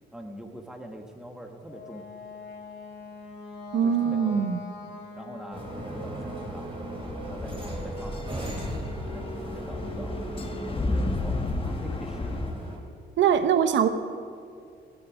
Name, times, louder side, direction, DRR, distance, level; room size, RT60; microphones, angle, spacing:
voice 1, 0.1-2.1 3.8-4.5 5.1-5.6 5.9-6.7 7.3-8.5 9.0-10.3 10.7-12.4, right 1 dB, 5° right, 3 dB, 1.3 m, -43 dB
Wind instrument woodwind instrument, 1.7-6.6, left 4 dB, 60° left, 2.1 m, -43 dB
voice 2, 3.7-4.6 13.2-13.9, right 8 dB, 70° right, 10 dB, 0.9 m, -22 dB
sound 1, 5.5-12.8, right 1 dB, 25° right, 3.1 m, -37 dB
sound 2, 7.0-12.5, left 2 dB, 25° left, 1.1 m, -32 dB
15.5 x 10.0 x 5.0 m, 2.3 s
cardioid pair, 90°, 20 cm